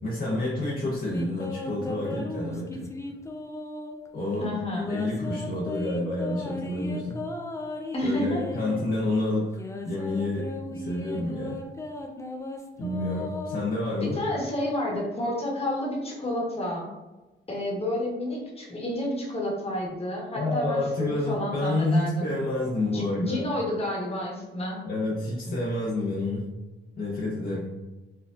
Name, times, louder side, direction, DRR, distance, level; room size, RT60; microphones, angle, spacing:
voice 1, 0.0-2.9 4.1-4.5 4.9-7.3 8.0-9.6 9.8-11.6 12.8-14.2 20.4-23.4 24.8-26.5 27.0-27.7, left 2 dB, 45° left, -5 dB, 0.8 m, -29 dB
sound 1, 0.9-4.1 4.6-8.9 9.5-14.2, left 1 dB, 15° left, 0.5 m, -36 dB
voice 2, 4.4-4.9 7.9-8.4 14.0-16.9 17.5-22.3 22.9-24.8, left 1 dB, 30° left, -2 dB, 1.2 m, -30 dB
4.5 x 2.4 x 2.4 m, 1.1 s
cardioid pair, 90°, 20 cm